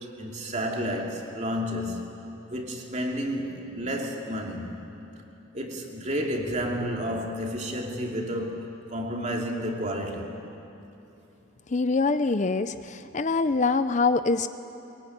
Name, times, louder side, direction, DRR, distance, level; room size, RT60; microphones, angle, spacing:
voice 1, 0.2-2.1 2.5-4.8 5.5-10.3, equal, 35° right, 1 dB, 2.8 m, -31 dB
voice 2, 11.7-14.5, left 3 dB, 35° left, 12 dB, 0.5 m, -24 dB
23.0 x 23.0 x 9.7 m, 2.9 s
head